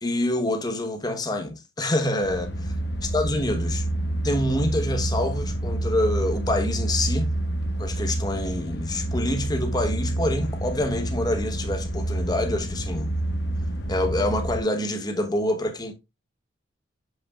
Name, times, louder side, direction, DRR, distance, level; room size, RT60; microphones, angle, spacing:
voice 1, 0.0-2.7 3.1-3.9 4.2-7.3 7.8-13.1 13.9-15.9, left 1 dB, 20° left, 1.0 m, -26 dB
sound 1, 2.2-14.6, right 1 dB, 55° left, 1.0 m, -28 dB
7.7 x 5.5 x 2.3 m
head